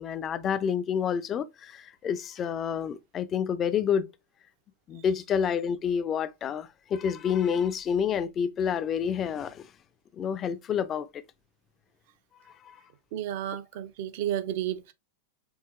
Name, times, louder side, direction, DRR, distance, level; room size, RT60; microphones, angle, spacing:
voice 1, 0.0-4.1 4.9-9.7 10.1-11.2 12.6-12.8, left 7 dB, 25° left, 0.4 m, -28 dB
voice 2, 13.1-14.9, right 11 dB, 50° right, 0.4 m, -32 dB
4.7 x 2.8 x 2.3 m
figure-of-eight pair, 90°, 0 cm